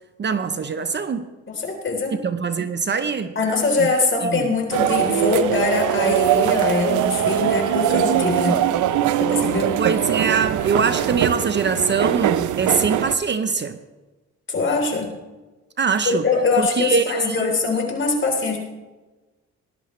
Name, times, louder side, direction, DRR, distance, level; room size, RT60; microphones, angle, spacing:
voice 1, 0.2-1.3 2.2-3.3 3.8-3.9 4.2-4.5 9.7-13.8 15.8-16.3 16.6-17.5, right 5 dB, 35° right, 10 dB, 0.8 m, -23 dB
voice 2, 1.5-2.2 3.4-8.6 9.2-9.8 14.5-15.1 16.1-18.6, left 3 dB, 40° left, 1 dB, 3.6 m, -22 dB
sound 1, 4.7-13.2, right 10 dB, 75° right, 0.7 m, -21 dB
19.5 x 11.0 x 3.2 m, 1.2 s
cardioid pair, 90°, 30 cm